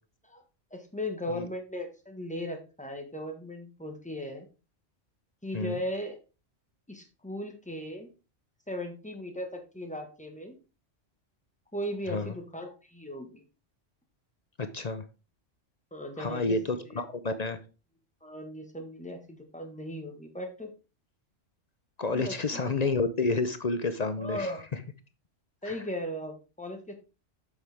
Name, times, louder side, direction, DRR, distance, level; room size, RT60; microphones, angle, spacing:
voice 1, 0.7-4.5 5.4-6.2 6.9-8.1 8.7-10.6 11.7-13.4 15.9-16.6 16.9-17.0 18.2-20.7 22.1-22.3 22.8-22.9 24.2-24.6 25.6-26.9, left 1 dB, 5° left, 3 dB, 1.5 m, -37 dB
voice 2, 14.6-15.0 16.2-17.6 22.0-24.5 25.7-25.8, left 3 dB, 40° left, 10 dB, 0.7 m, -30 dB
7.9 x 6.5 x 3.5 m, 0.31 s
omnidirectional pair, 1.2 m